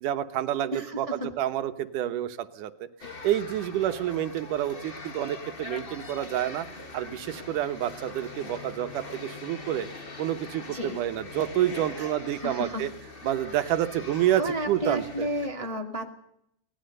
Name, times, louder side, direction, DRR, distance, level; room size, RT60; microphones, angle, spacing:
voice 1, 0.0-2.7 3.2-6.7 6.9-9.9 10.2-12.9 13.2-15.3, right 12 dB, 85° right, 10 dB, 2.6 m, -28 dB
voice 2, 0.7-1.1 10.7-11.0 12.0-12.9 14.3-16.1, equal, 15° left, 2 dB, 1.5 m, -32 dB
sound 1, 3.0-15.5, left 3 dB, 45° left, 0.7 m, -42 dB
25.0 x 18.5 x 6.6 m, 0.75 s
omnidirectional pair, 3.6 m